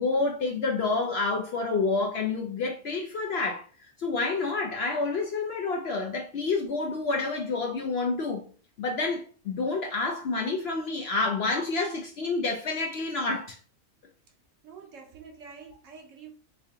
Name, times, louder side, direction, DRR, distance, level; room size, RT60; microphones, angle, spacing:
voice 1, 0.0-8.4 8.8-13.6, left 3 dB, 65° left, 0.6 m, -28 dB
voice 2, 14.6-16.3, right 5 dB, 65° right, 1.1 m, -47 dB
3.3 x 2.7 x 3.5 m
omnidirectional pair, 1.5 m